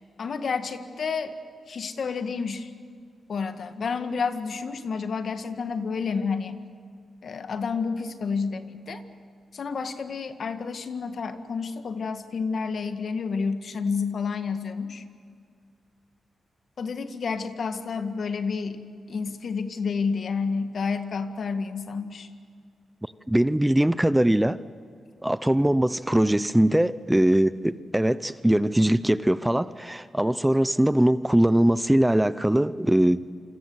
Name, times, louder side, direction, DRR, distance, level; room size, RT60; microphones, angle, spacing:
voice 1, 0.2-1.3 1.7-2.7 3.3-6.6 7.2-9.0 9.5-15.0 16.8-18.8 19.1-22.3, left 5 dB, 60° left, 1.8 m, -30 dB
voice 2, 23.3-24.6 25.2-33.3, right 1 dB, 5° right, 0.6 m, -21 dB
27.5 x 26.0 x 7.9 m
cardioid pair, 90°, 0 cm